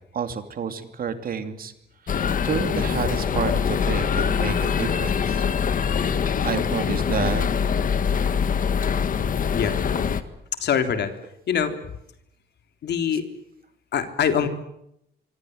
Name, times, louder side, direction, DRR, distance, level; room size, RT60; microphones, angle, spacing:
voice 1, 0.1-1.7 2.0-5.4 6.4-7.5, right 6 dB, 55° right, 9 dB, 2.8 m, -29 dB
sound 1, 2.1-10.2, left 7 dB, 50° left, 1.7 m, -23 dB
voice 2, 10.6-11.1 11.5-11.8 12.8-13.2 13.9-14.5, left 8 dB, 70° left, 8 dB, 3.4 m, -23 dB
25.5 x 25.0 x 8.0 m, 0.78 s
wide cardioid pair, 180°, 18 cm